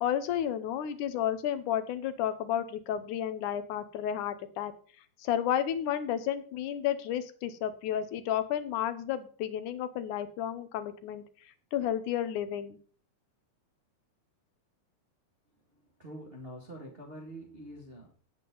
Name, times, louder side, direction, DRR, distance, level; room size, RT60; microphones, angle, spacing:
voice 1, 0.0-4.7 5.2-11.2 11.7-12.8, left 10 dB, 85° left, 11 dB, 2.4 m, -32 dB
voice 2, 15.7-18.1, right 1 dB, 20° right, -2 dB, 1.9 m, -46 dB
17.0 x 7.6 x 3.9 m, 0.43 s
omnidirectional pair, 3.5 m